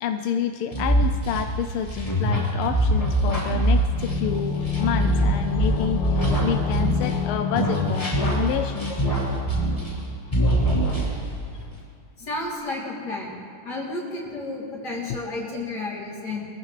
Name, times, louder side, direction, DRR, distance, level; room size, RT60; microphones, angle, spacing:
voice 1, 0.0-9.0 9.5-9.7 15.1-15.2, left 8 dB, 90° left, 7 dB, 1.4 m, -29 dB
sound 1, 0.7-7.3 7.5-10.0 10.3-11.4, right 1 dB, 15° left, 3.9 m, -23 dB
sound 2, 3.9-9.6 9.8-9.9, left 7 dB, 70° left, 1.5 m, -29 dB
voice 2, 12.2-16.5, left 2 dB, 50° left, -6 dB, 3.7 m, -32 dB
22.5 x 14.5 x 3.2 m, 2.3 s
omnidirectional pair, 2.3 m